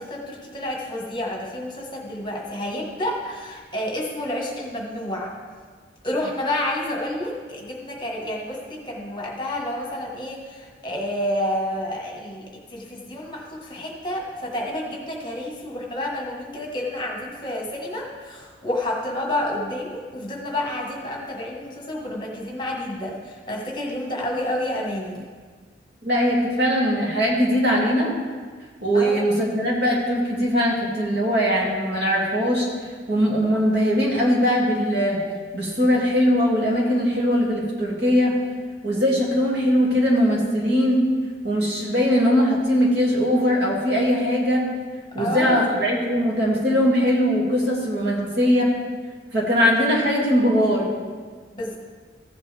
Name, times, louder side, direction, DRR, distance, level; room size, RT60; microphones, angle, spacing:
voice 1, 0.0-5.3 6.0-25.2 28.9-29.2 45.2-45.7 49.5-49.7 51.5-51.8, left 1 dB, 25° left, -1 dB, 1.5 m, -29 dB
voice 2, 26.0-28.1 28.8-32.7 33.1-35.2 35.5-38.3 38.8-41.0 41.4-44.6 45.1-48.7 49.3-50.9, equal, 65° right, -4 dB, 2.5 m, -20 dB
15.0 x 8.1 x 3.4 m, 1.5 s
head